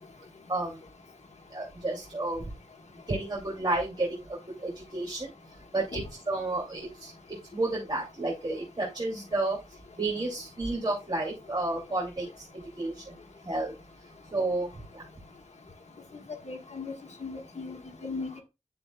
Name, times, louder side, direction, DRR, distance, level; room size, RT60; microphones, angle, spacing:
voice 1, 1.5-2.5 3.1-5.3 5.7-7.1 7.5-9.6 10.0-12.5 12.8-13.1 13.4-13.7 14.3-15.0, right 2 dB, 40° right, -5 dB, 2.8 m, -31 dB
voice 2, 16.4-16.9 17.2-18.4, left 3 dB, 70° left, 3 dB, 1.6 m, -37 dB
9.6 x 6.9 x 2.3 m, 0.25 s
wide cardioid pair, 70°, 12 cm